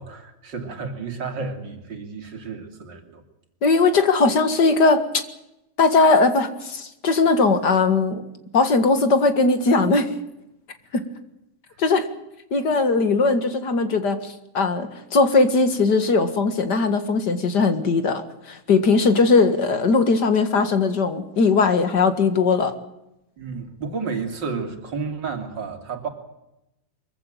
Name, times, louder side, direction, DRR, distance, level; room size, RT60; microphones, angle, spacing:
voice 1, 0.0-3.2 23.4-26.1, right 5 dB, 75° right, 6 dB, 3.5 m, -31 dB
voice 2, 3.6-5.0 5.8-8.2 8.5-10.1 10.9-11.0 11.8-12.1 12.5-22.7, left 4 dB, 65° left, 10 dB, 2.5 m, -19 dB
23.5 x 15.5 x 9.0 m, 0.89 s
omnidirectional pair, 2.0 m